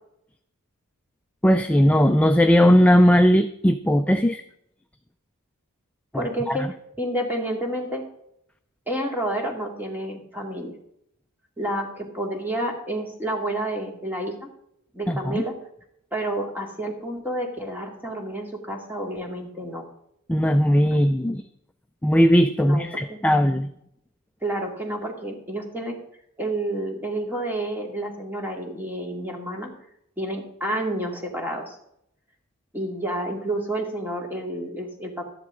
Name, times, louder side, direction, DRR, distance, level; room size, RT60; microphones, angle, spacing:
voice 1, 1.4-4.4 6.1-6.7 15.1-15.4 20.3-21.4 22.0-23.7, equal, 5° left, 7 dB, 0.4 m, -18 dB
voice 2, 6.1-8.1 8.9-10.7 11.6-14.5 14.9-15.6 16.1-19.9 20.9-21.0 22.6-23.2 24.4-26.0 26.4-29.7 30.2-31.8 32.7-35.2, right 1 dB, 10° right, 0 dB, 2.3 m, -30 dB
13.5 x 10.5 x 3.8 m, 0.74 s
head